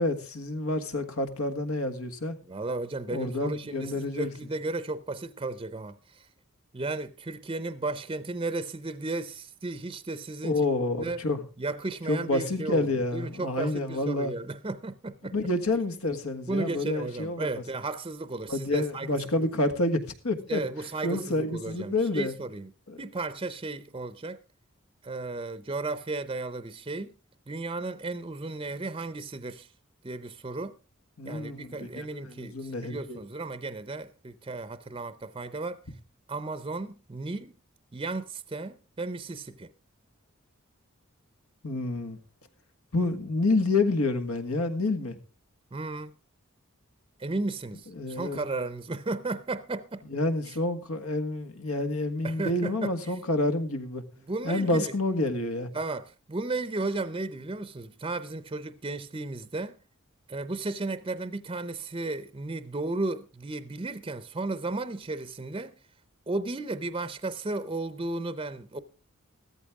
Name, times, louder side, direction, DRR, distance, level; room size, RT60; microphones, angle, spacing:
voice 1, 0.0-2.4 3.1-4.3 10.4-11.4 12.1-14.3 15.3-17.5 18.5-20.0 20.2-20.6 21.0-22.3 22.9-23.0 31.2-33.2 41.6-42.2 42.9-45.2 48.0-48.4 50.1-54.0 54.4-55.7, left 2 dB, 90° left, 1.7 m, -28 dB
voice 2, 2.4-6.3 6.7-10.6 11.0-11.2 11.6-15.3 16.5-19.5 20.5-22.7 23.0-24.4 25.0-27.1 27.5-29.7 30.0-30.7 31.2-35.8 36.3-37.5 37.9-39.7 45.7-46.1 47.2-50.0 50.5-50.6 52.2-53.2 54.2-54.9 55.7-59.8 60.3-65.7 66.3-68.8, right 2 dB, 25° right, 0.6 m, -34 dB
14.5 x 14.0 x 3.6 m
head